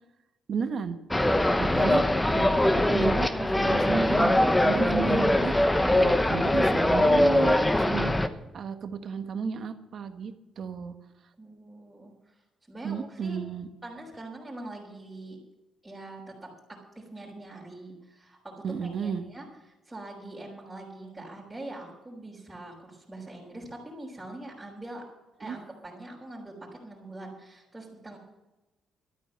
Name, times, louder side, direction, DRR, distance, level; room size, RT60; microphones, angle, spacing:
voice 1, 0.5-1.0 1.6-2.0 2.3-10.9 12.8-13.7 18.6-19.2 25.4-25.6, right 6 dB, 55° right, 7 dB, 1.4 m, -33 dB
sound 1, 1.1-8.3, left 1 dB, 10° left, 1.0 m, -22 dB
voice 2, 11.4-12.4 12.7-13.4 13.8-15.4 15.8-19.5 19.8-25.0 25.4-28.2, right 2 dB, 10° right, -6 dB, 5.1 m, -43 dB
13.0 x 9.3 x 7.5 m, 1.0 s
cardioid pair, 90°, 0 cm